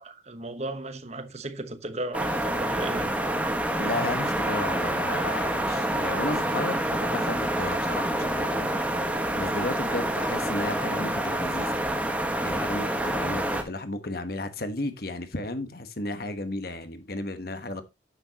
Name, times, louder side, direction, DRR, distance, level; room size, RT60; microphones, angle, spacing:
voice 1, 0.0-3.2, right 2 dB, 35° right, 1.1 m, -35 dB
sound 1, 2.1-13.6, right 1 dB, 5° right, 1.5 m, -27 dB
voice 2, 3.8-6.8 7.1-8.7 9.3-11.7 12.4-17.8, left 2 dB, 50° left, 1.2 m, -33 dB
9.8 x 8.7 x 2.9 m
head